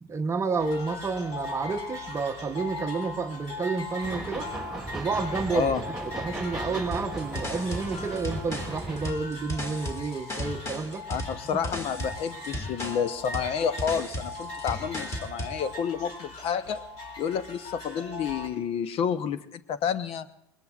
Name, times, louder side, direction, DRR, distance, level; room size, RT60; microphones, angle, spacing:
voice 1, 0.0-4.5 4.9-5.7 6.0-11.1 11.5-11.6, right 4 dB, 20° right, 5 dB, 0.9 m, -30 dB
sound 1, 0.6-18.5, left 2 dB, 60° left, 5.9 m, -40 dB
sound 2, 4.0-9.1, right 1 dB, 5° right, 1.8 m, -37 dB
voice 2, 5.5-5.8 11.1-16.8 17.2-20.3, left 7 dB, 45° left, 14 dB, 0.7 m, -30 dB
sound 3, 6.9-15.6, left 1 dB, 20° left, 2.0 m, -36 dB
21.5 x 20.0 x 2.4 m, 0.82 s
hypercardioid pair, 95°, 14 cm